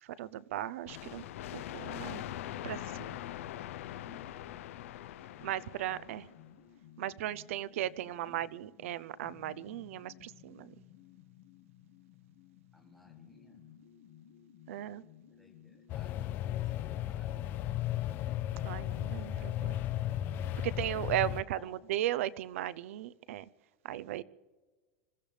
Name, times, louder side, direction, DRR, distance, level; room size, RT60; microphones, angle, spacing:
voice 1, 0.0-1.2 1.7-2.2 2.6-3.2 5.4-6.3 7.0-10.7 14.7-15.0 18.6-19.8 20.6-23.4 23.8-24.2, right 13 dB, 80° right, 0.6 m, -36 dB
sound 1, 0.9-6.4, left 12 dB, 85° left, 0.7 m, -42 dB
sound 2, 1.4-16.9, left 10 dB, 60° left, 2.1 m, -58 dB
voice 2, 8.0-8.4 12.7-13.6 15.3-17.6 21.2-21.8, left 1 dB, ahead, 2.6 m, -60 dB
sound 3, 15.9-21.4, left 13 dB, 30° left, 0.4 m, -35 dB
26.5 x 15.5 x 3.4 m
supercardioid pair, 175°, 7 cm